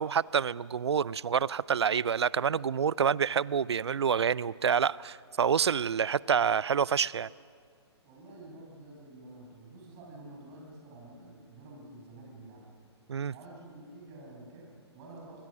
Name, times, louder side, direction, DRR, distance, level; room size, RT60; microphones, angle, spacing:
voice 1, 0.0-7.3 13.1-13.3, right 7 dB, 70° right, 22 dB, 0.5 m, -27 dB
voice 2, 8.0-12.7 13.3-15.4, right 2 dB, 30° right, -1 dB, 6.3 m, -49 dB
26.0 x 22.0 x 6.3 m, 2.1 s
figure-of-eight pair, 130°, 15 cm